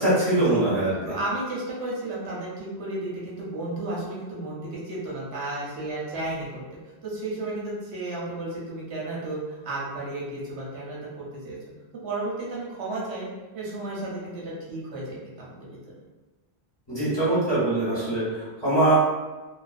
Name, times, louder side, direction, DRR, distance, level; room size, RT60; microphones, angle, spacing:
voice 1, 0.0-1.0 16.9-18.2 18.6-19.0, right 1 dB, 25° left, -10 dB, 1.0 m, -22 dB
voice 2, 1.0-6.6 7.0-11.6 12.0-13.3 13.5-15.7, right 2 dB, 80° right, -6 dB, 1.0 m, -33 dB
2.4 x 2.2 x 2.4 m, 1.2 s
omnidirectional pair, 1.1 m